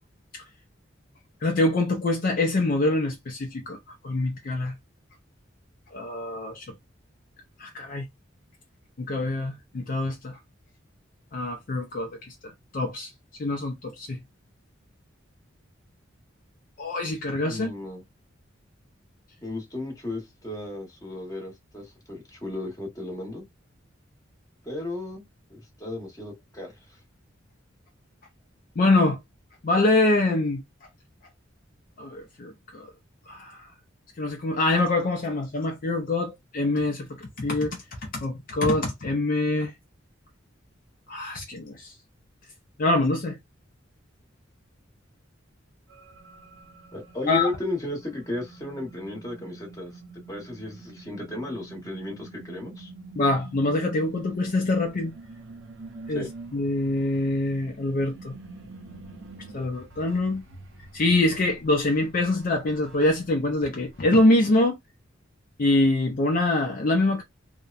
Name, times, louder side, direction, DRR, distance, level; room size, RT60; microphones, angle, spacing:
voice 1, 1.4-4.8 5.9-6.7 7.6-8.1 9.0-10.4 11.3-13.1 13.4-14.2 16.8-17.7 28.8-29.2 29.6-30.6 32.0-32.9 33.3-33.7 34.2-39.7 41.1-41.9 42.8-43.4 47.3-47.5 53.2-55.1 56.1-56.3 56.5-58.4 59.5-60.4 60.9-64.8 65.6-67.2, left 2 dB, 45° left, 0.5 m, -25 dB
voice 2, 17.4-18.0 19.4-23.4 24.6-25.2 25.5-27.0 46.9-49.9 50.3-52.9 56.1-56.3, left 2 dB, 20° left, 1.0 m, -34 dB
sound 1, 45.9-64.0, right 3 dB, 80° right, 0.6 m, -46 dB
2.8 x 2.0 x 2.4 m
head